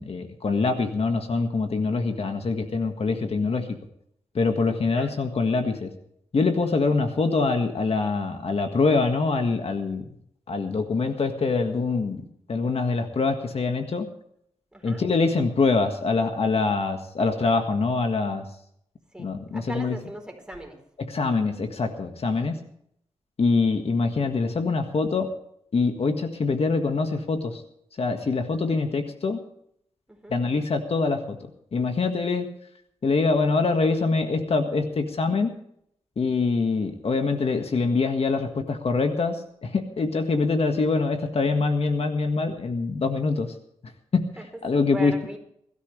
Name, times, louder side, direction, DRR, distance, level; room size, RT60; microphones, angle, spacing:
voice 1, 0.0-3.8 4.4-5.9 6.3-10.1 10.5-14.1 14.8-18.5 19.2-20.0 21.0-22.6 23.4-25.3 25.7-27.6 28.0-29.4 30.3-31.4 31.7-32.5 33.0-35.5 36.2-43.5 44.1-44.3 44.6-45.1, left 4 dB, 60° left, 5 dB, 1.7 m, -24 dB
voice 2, 14.7-15.0 19.1-20.8 30.1-30.4 44.4-44.5 44.7-45.4, right 1 dB, 5° right, 3 dB, 4.2 m, -39 dB
22.0 x 13.0 x 3.3 m, 0.70 s
wide cardioid pair, 80°, 11 cm